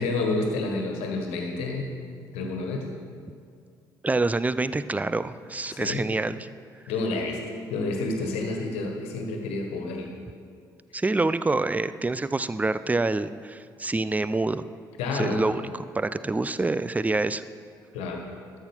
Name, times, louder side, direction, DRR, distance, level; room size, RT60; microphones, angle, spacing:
voice 1, 0.0-1.9 2.3-2.9 5.7-6.0 6.9-7.4 7.7-10.1 15.0-15.4 17.9-18.2, left 3 dB, 70° left, 2 dB, 1.6 m, -29 dB
voice 2, 4.0-6.5 10.9-14.6 15.1-15.6 15.9-17.4, right 3 dB, 15° right, 14 dB, 0.5 m, -26 dB
13.0 x 7.7 x 5.4 m, 2.2 s
figure-of-eight pair, 45°, 11 cm